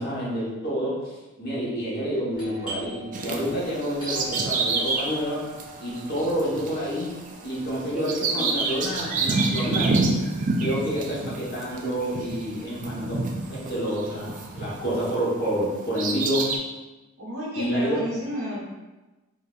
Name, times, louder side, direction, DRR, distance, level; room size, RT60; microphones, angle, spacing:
voice 1, 0.0-5.5 5.8-7.1 7.4-10.0 10.5-13.2 13.5-16.5 17.5-18.0, equal, 45° left, -7 dB, 1.1 m, -28 dB
Doorbell, 2.3-11.7 12.0-12.1 12.7-13.1 13.4-14.8, right 2 dB, 25° left, 1.2 m, -43 dB
Bird vocalization bird call bird song, 3.1-15.2 15.7-16.6, right 3 dB, 35° right, 0.3 m, -28 dB
voice 2, 17.2-18.6, equal, 80° right, -6 dB, 1.2 m, -31 dB
3.9 x 2.6 x 2.4 m, 1.1 s
head